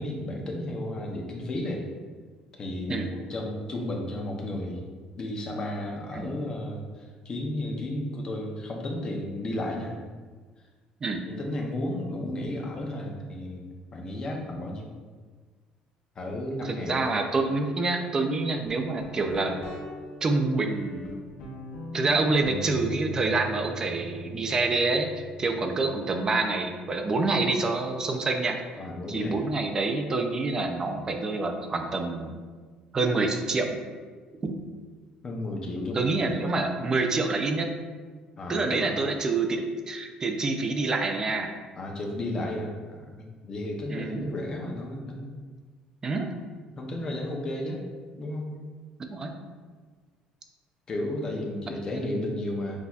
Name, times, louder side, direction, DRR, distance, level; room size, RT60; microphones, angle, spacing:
voice 1, 0.0-1.9 2.6-4.8 5.1-10.0 11.3-14.9 16.2-17.0 27.1-27.5 28.8-29.4 35.2-36.5 38.4-39.0 41.8-45.3 46.8-47.8 48.2-48.5 50.9-52.8, left 1 dB, 30° left, 0 dB, 0.6 m, -33 dB
voice 2, 16.6-19.5 20.2-21.1 21.9-28.6 29.1-32.4 32.9-33.8 34.4-34.5 35.9-37.7 38.5-41.5 43.9-44.3 46.0-46.3 49.1-49.3 51.9-52.0, right 3 dB, 25° right, 4 dB, 0.4 m, -27 dB
Guitar, 18.7-28.1, right 1 dB, 85° left, 1.3 m, -42 dB
6.0 x 2.7 x 2.4 m, 1.5 s
cardioid pair, 140°, 3 cm